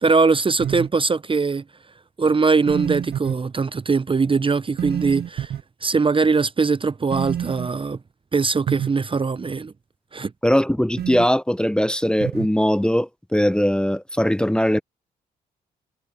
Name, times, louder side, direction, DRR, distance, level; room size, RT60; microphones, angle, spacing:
voice 1, 0.0-1.6 2.2-5.5 5.8-8.0 8.3-9.7 10.1-10.3, right 4 dB, 30° right, 0.8 m, -21 dB
sound 1, 0.6-0.9 2.7-3.3 4.8-5.6 7.1-7.7 8.7-8.9 11.0-11.3 12.2-12.5, right 10 dB, 60° right, 0.8 m, -27 dB
voice 2, 10.4-14.8, equal, 5° left, 0.9 m, -20 dB
hypercardioid pair, 50°, 18 cm